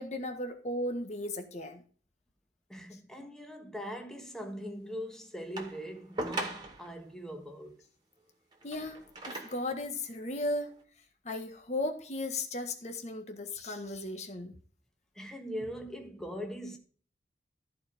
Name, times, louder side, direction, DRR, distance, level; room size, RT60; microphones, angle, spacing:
voice 1, 0.0-1.8 8.6-9.0 9.3-10.7 11.2-14.5, left 1 dB, 40° left, 1.6 m, -36 dB
voice 2, 2.7-7.8 15.1-16.8, equal, 5° left, 1.4 m, -41 dB
sound 1, 5.6-7.0 8.5-9.7 10.5-10.6, right 2 dB, 25° right, 2.0 m, -39 dB
14.0 x 4.9 x 5.2 m
head